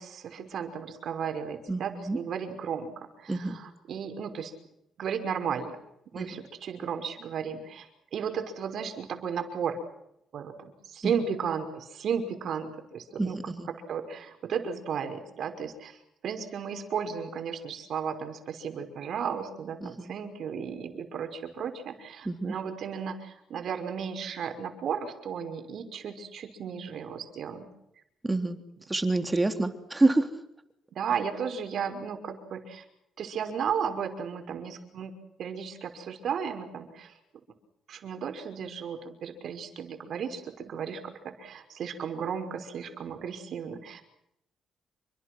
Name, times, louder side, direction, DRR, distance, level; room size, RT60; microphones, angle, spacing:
voice 1, 0.0-4.5 5.0-5.8 6.1-9.8 10.3-13.4 13.7-27.7 30.9-32.8 33.2-35.1 35.4-37.1 37.9-44.0, right 7 dB, 65° right, 7 dB, 5.7 m, -34 dB
voice 2, 1.7-2.2 3.3-3.6 6.2-6.3 11.0-11.1 13.2-13.7 19.8-20.1 22.3-22.5 28.2-28.6 28.9-30.3, right 2 dB, 15° right, 7 dB, 3.5 m, -27 dB
28.5 x 25.0 x 6.3 m, 0.80 s
cardioid pair, 90°, 0 cm